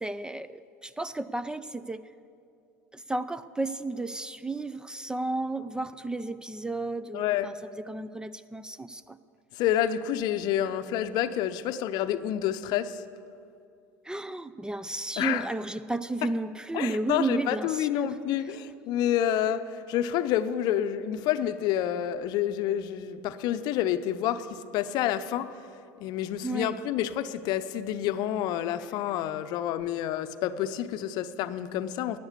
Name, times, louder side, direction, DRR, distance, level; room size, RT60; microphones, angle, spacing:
voice 1, 0.0-2.0 2.9-7.5 7.9-9.2 14.1-18.1 26.4-26.7, right 2 dB, 10° right, 15 dB, 0.4 m, -33 dB
voice 2, 7.1-7.6 9.5-13.0 15.2-15.5 16.2-16.3 16.7-25.6 26.0-32.2, left 11 dB, 50° left, 12 dB, 0.7 m, -28 dB
13.0 x 9.5 x 8.2 m, 2.5 s
figure-of-eight pair, 75°, 9 cm